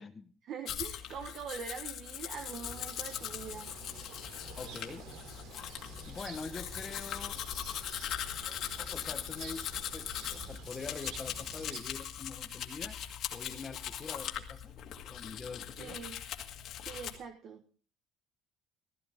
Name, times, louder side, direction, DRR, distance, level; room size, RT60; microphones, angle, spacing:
voice 1, 0.4-3.7 15.8-16.2 16.8-17.6, right 6 dB, 50° right, 6 dB, 1.4 m, -43 dB
Domestic sounds home sounds, 0.7-17.2, left 10 dB, 50° left, 2.1 m, -40 dB
sound 1, 2.3-11.8, right 5 dB, 75° right, 3.0 m, -49 dB
voice 2, 4.6-5.0 6.1-7.4 8.5-13.0 13.3-14.7 15.0-16.0, left 4 dB, 20° left, 9 dB, 1.2 m, -44 dB
16.0 x 15.0 x 3.7 m, 0.40 s
cardioid pair, 160°, 0 cm